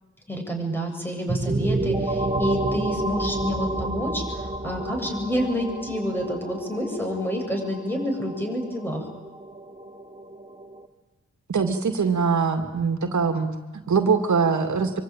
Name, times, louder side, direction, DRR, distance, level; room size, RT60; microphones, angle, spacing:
voice 1, 0.3-9.0, equal, 5° left, 2 dB, 7.7 m, -28 dB
sound 1, 1.3-10.8, right 2 dB, 20° right, 2.4 m, -30 dB
voice 2, 11.5-15.0, right 5 dB, 70° right, 6 dB, 2.4 m, -23 dB
25.5 x 24.5 x 9.1 m, 1.2 s
wide cardioid pair, 120°, 30 cm